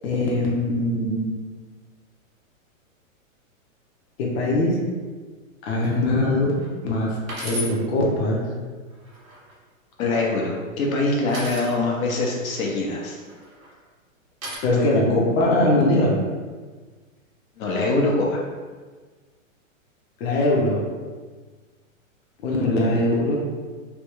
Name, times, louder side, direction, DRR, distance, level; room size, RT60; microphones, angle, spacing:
voice 1, 0.0-1.3 4.2-4.8 5.6-8.5 14.6-16.2 20.2-20.8 22.4-23.4, left 1 dB, 50° left, -3 dB, 0.7 m, -21 dB
sound 1, 5.8-6.1 6.6-6.7 7.3-7.7 8.9-9.5 11.3-11.7 13.2-13.7 14.4-14.6, equal, 85° right, 1.3 m, -34 dB
voice 2, 10.0-13.2 17.6-18.4, left 2 dB, 85° left, -1 dB, 0.9 m, -23 dB
3.4 x 2.3 x 3.0 m, 1.4 s
hypercardioid pair, 145°, 40 cm